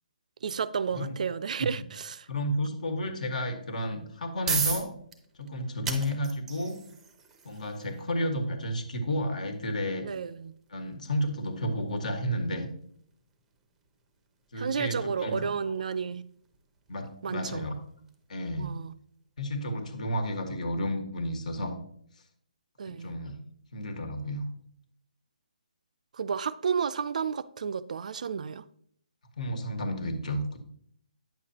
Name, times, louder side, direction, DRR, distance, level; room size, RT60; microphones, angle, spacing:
voice 1, 0.4-2.3 10.0-10.5 14.6-16.2 17.2-17.7 18.6-18.9 22.8-23.2 26.1-28.6, right 6 dB, 60° right, 0.3 m, -32 dB
voice 2, 2.3-4.9 5.4-6.8 7.4-10.0 10.7-12.7 14.5-15.5 16.9-17.7 18.3-18.7 19.4-21.7 22.8-23.4 23.7-24.4 29.4-30.6, equal, 60° left, 1.5 m, -32 dB
sound 1, 4.0-18.8, right 5 dB, 10° right, 0.6 m, -40 dB
9.1 x 6.6 x 2.9 m
hypercardioid pair, 160°, 5 cm